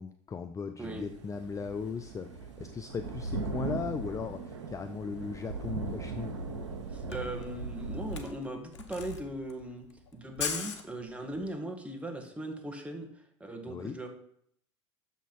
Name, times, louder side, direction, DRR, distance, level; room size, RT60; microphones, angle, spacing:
voice 1, 0.0-6.4 13.7-14.0, left 5 dB, 20° left, 8 dB, 0.5 m, -38 dB
sound 1, 0.9-8.2, right 4 dB, 80° right, 1.1 m, -39 dB
Camera, 6.6-6.7 6.9-11.5, left 6 dB, 75° left, 0.9 m, -39 dB
voice 2, 6.9-9.9 10.1-13.1 13.4-14.1, right 1 dB, 10° right, 3 dB, 1.7 m, -38 dB
6.9 x 5.8 x 4.6 m, 0.66 s
hypercardioid pair, 80°, 15 cm